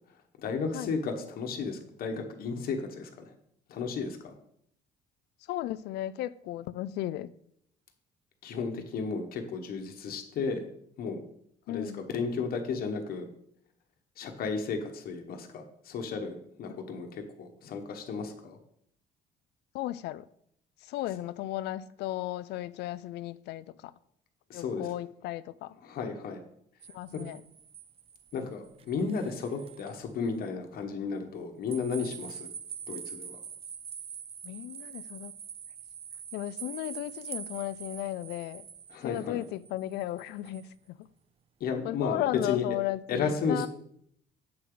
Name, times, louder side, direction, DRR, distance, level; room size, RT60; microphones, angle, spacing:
voice 1, 0.4-3.3 3.7-4.3 8.4-10.7 11.0-11.2 11.7-13.3 14.2-18.6 24.5-24.9 25.8-26.4 27.1-27.2 28.3-32.5 32.9-33.4 38.9-39.4 41.6-42.6 43.1-43.7, left 5 dB, 60° left, 1.2 m, -33 dB
voice 2, 5.5-7.3 11.7-12.1 16.7-16.8 19.7-20.2 20.8-23.9 24.5-25.8 26.9-27.4 34.4-35.4 36.3-38.7 39.0-41.0 41.8-43.7, left 14 dB, 80° left, 0.4 m, -35 dB
sound 1, 26.8-30.0 30.4-30.5 31.7-40.7, right 8 dB, 35° right, 0.5 m, -45 dB
7.9 x 6.8 x 3.8 m
cardioid pair, 110°, 17 cm